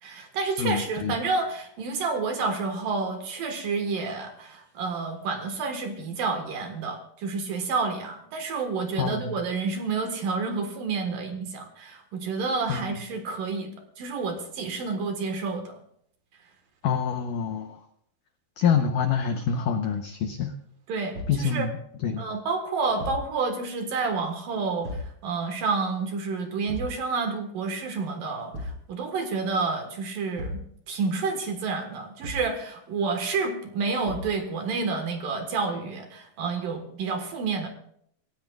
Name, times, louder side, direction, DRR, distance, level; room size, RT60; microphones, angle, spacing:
voice 1, 0.0-13.7 14.0-15.8 20.9-21.7 22.2-30.6 30.9-37.7, right 4 dB, 60° right, 5 dB, 2.8 m, -29 dB
voice 2, 0.6-1.1 9.0-9.4 12.7-12.9 16.8-17.8 18.6-20.5 21.3-21.8 22.0-22.3, left 7 dB, 85° left, 6 dB, 1.8 m, -26 dB
Thump thud, 21.1-21.5 23.0-23.3 24.8-25.2 26.7-27.0 28.5-28.9 30.4-30.7 32.2-32.6 34.1-34.4, left 1 dB, 35° right, 3.1 m, -35 dB
27.0 x 16.0 x 2.4 m, 0.67 s
omnidirectional pair, 5.1 m